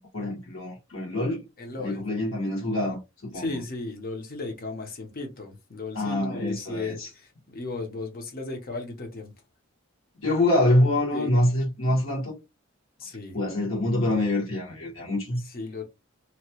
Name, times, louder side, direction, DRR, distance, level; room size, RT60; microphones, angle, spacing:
voice 1, 0.1-1.4 1.8-3.6 5.9-7.1 10.2-12.3 13.3-15.4, left 1 dB, 70° left, 1.4 m, -25 dB
voice 2, 1.6-2.0 3.3-9.3 11.1-11.3 13.0-13.4 15.5-15.8, left 3 dB, 45° left, 0.8 m, -35 dB
2.9 x 2.2 x 2.9 m
head